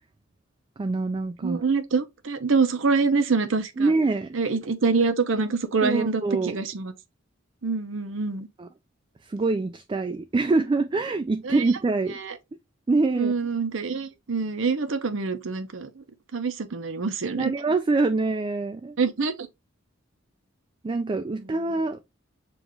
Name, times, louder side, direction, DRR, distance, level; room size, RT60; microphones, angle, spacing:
voice 1, 0.8-1.6 3.8-4.3 5.8-6.6 8.6-8.7 9.2-12.2 12.9-13.3 17.4-19.0 20.8-22.0, right 3 dB, 25° right, 0.3 m, -25 dB
voice 2, 1.4-3.9 4.3-6.9 7.6-8.5 11.4-11.6 12.2-12.3 13.2-16.0 16.3-17.5 19.0-19.5, right 4 dB, 75° right, 0.7 m, -25 dB
7.0 x 2.5 x 3.0 m
head